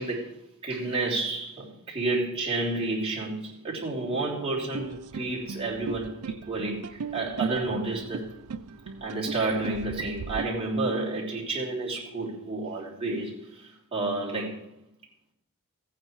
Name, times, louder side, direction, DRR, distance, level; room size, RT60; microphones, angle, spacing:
voice 1, 0.0-8.4 9.0-14.7, right 2 dB, 25° right, -5 dB, 3.3 m, -30 dB
sound 1, 4.7-10.4, right 5 dB, 85° right, 0.5 m, -37 dB
15.0 x 9.1 x 4.6 m, 0.79 s
head